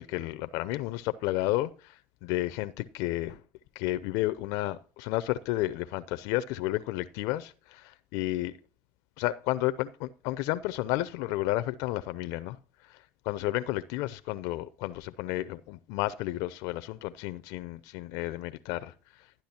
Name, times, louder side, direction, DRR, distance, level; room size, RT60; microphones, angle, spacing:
voice 1, 0.0-3.4 3.8-8.5 9.2-12.6 12.8-18.9, left 16 dB, 75° left, 0.4 m, -32 dB
12.0 x 10.0 x 2.8 m
supercardioid pair, 90°, 6 cm